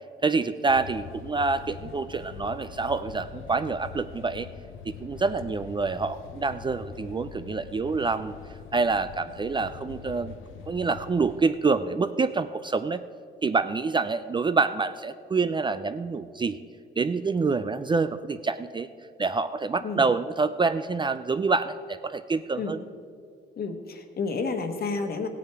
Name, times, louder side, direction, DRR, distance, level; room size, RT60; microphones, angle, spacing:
voice 1, 0.2-4.5 4.8-8.3 8.7-10.3 10.7-13.0 13.4-16.6 17.0-18.9 19.2-22.8, right 4 dB, 25° right, 11 dB, 0.4 m, -27 dB
sound 1, 0.7-11.4, left 8 dB, 85° left, 0.6 m, -43 dB
voice 2, 23.6-25.3, left 4 dB, 50° left, 6 dB, 1.3 m, -30 dB
15.5 x 8.5 x 4.7 m, 2.2 s
cardioid pair, 90°, 20 cm